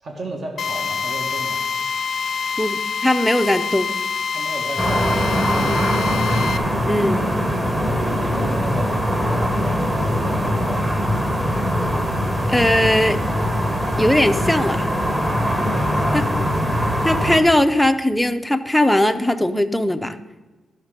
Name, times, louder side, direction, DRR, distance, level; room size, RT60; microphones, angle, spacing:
voice 1, 0.0-1.6 4.3-6.0 7.8-8.9 9.2-11.0 15.5-16.2, right 2 dB, 55° right, 1 dB, 1.7 m, -34 dB
Drill, 0.6-6.6, left 6 dB, 65° left, 0.5 m, -26 dB
voice 2, 2.6-3.9 6.9-7.3 12.5-13.2 14.0-14.9 17.0-20.2, left 1 dB, 5° left, 7 dB, 0.5 m, -19 dB
sound 1, 4.8-17.4, equal, 20° right, 1.3 m, -21 dB
12.0 x 6.3 x 5.2 m, 1.2 s
cardioid pair, 110°, 0 cm